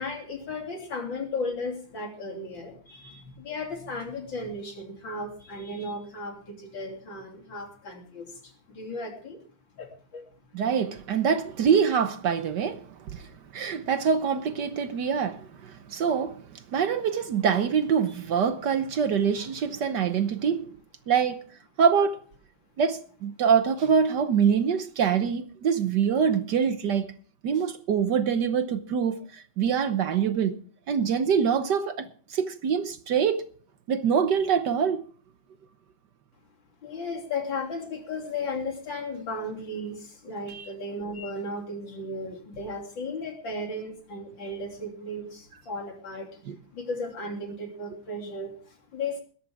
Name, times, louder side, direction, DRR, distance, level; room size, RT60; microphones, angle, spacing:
voice 1, 0.0-9.4 9.7-10.2 36.8-46.4 46.7-49.2, left 2 dB, 65° left, 3.8 m, -35 dB
voice 2, 10.5-20.7 21.1-21.5 21.8-22.2 22.8-27.1 27.4-33.5 33.9-35.0 40.5-40.7 46.5-46.6, right 7 dB, 60° right, 1.4 m, -25 dB
21.0 x 11.5 x 3.5 m
omnidirectional pair, 2.2 m